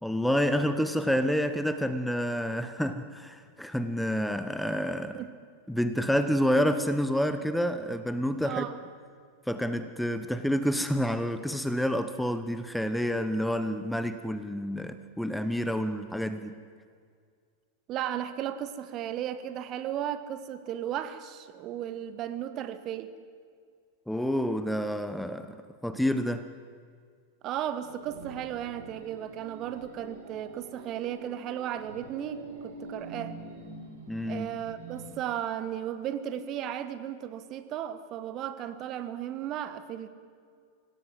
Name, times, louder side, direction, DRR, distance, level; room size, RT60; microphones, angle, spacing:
voice 1, 0.0-5.2 5.7-8.6 9.5-16.6 24.1-25.6 25.8-26.5 34.1-34.5, equal, ahead, 11 dB, 1.0 m, -28 dB
voice 2, 8.4-8.8 17.9-23.1 27.4-33.3 34.3-40.1, right 10 dB, 35° right, 12 dB, 1.3 m, -35 dB
sound 1, 27.8-35.1, right 2 dB, 55° right, 3.8 m, -45 dB
26.0 x 17.5 x 7.7 m, 2.1 s
figure-of-eight pair, 90°, 0 cm